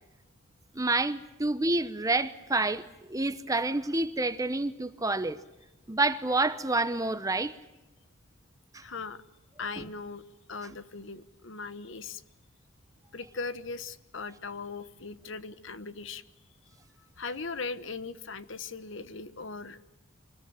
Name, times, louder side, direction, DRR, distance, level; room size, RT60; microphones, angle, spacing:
voice 1, 0.7-5.4 5.9-7.5 8.7-8.8, right 2 dB, 15° right, 0.9 m, -28 dB
voice 2, 8.8-9.2 9.6-10.2 10.5-12.2 13.1-16.2 17.2-19.9, left 4 dB, 65° left, 1.1 m, -39 dB
25.0 x 20.0 x 8.9 m
head